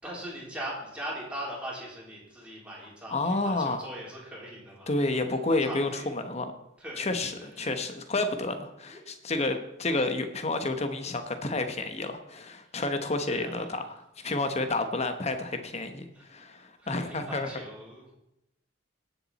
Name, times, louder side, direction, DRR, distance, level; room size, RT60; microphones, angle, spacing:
voice 1, 0.0-5.2 5.6-6.2 6.8-7.1 7.4-7.9 8.9-9.1 12.6-12.7 13.3-13.8 16.1-16.3 16.8-18.2, right 1 dB, 5° right, -5 dB, 3.6 m, -41 dB
voice 2, 3.1-3.8 4.9-6.5 7.0-17.5, left 2 dB, 35° left, 8 dB, 1.1 m, -30 dB
18.5 x 7.1 x 4.2 m, 0.84 s
head